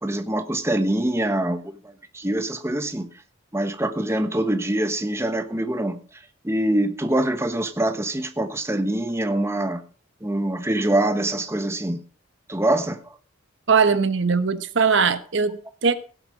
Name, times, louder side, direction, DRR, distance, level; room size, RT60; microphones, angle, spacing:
voice 1, 0.0-3.1 3.5-9.8 10.2-12.0 12.5-13.2, right 1 dB, 15° right, 1.1 m, -24 dB
voice 2, 13.7-15.9, right 5 dB, 65° right, 1.0 m, -20 dB
17.0 x 8.0 x 5.0 m
head